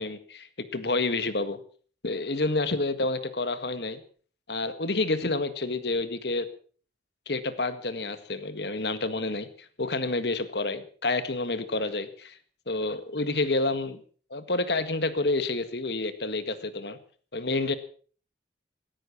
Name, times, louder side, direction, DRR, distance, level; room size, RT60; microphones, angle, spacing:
voice 1, 0.0-1.6 2.0-4.0 4.5-6.5 7.3-9.5 9.8-12.4 12.7-14.0 14.3-17.0 17.3-17.7, left 2 dB, 65° left, 12 dB, 1.8 m, -29 dB
17.5 x 14.0 x 6.0 m, 0.43 s
head